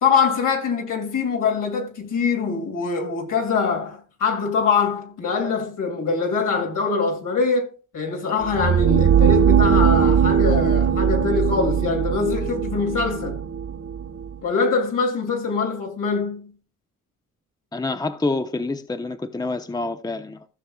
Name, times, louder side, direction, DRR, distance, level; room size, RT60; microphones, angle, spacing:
voice 1, 0.0-13.4 14.4-16.5, left 5 dB, 70° left, 2.9 m, -23 dB
sound 1, 8.4-14.3, right 8 dB, 45° right, 1.0 m, -19 dB
voice 2, 17.7-20.5, left 3 dB, 10° left, 0.8 m, -27 dB
15.5 x 6.3 x 2.3 m
cardioid pair, 80°, 32 cm